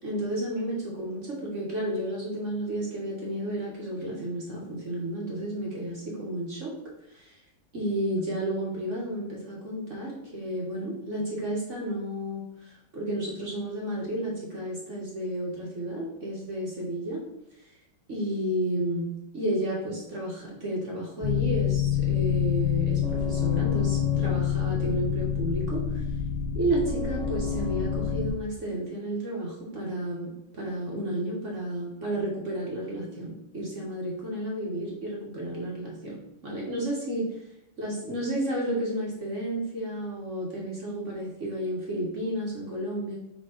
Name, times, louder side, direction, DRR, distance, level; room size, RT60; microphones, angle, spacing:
voice 1, 0.0-6.7 7.1-7.4 7.7-17.2 17.6-17.7 18.1-26.0 26.5-37.4 37.8-43.2, right 1 dB, 40° right, -3 dB, 1.4 m, -32 dB
sound 1, 21.2-28.3, left 8 dB, 35° left, 1.3 m, -27 dB
5.1 x 3.6 x 5.1 m, 0.87 s
omnidirectional pair, 2.3 m